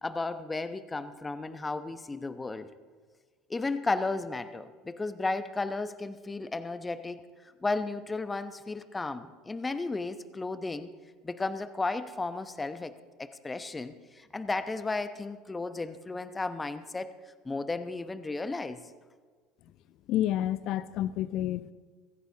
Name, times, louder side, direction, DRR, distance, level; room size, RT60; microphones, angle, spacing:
voice 1, 0.0-2.7 3.5-7.2 7.6-10.9 11.2-12.9 13.2-17.1 17.4-18.8, left 3 dB, 15° left, 11 dB, 0.9 m, -34 dB
voice 2, 20.1-21.7, left 12 dB, 55° left, 16 dB, 0.5 m, -29 dB
24.0 x 15.5 x 2.9 m, 1.5 s
hypercardioid pair, 75°, 0 cm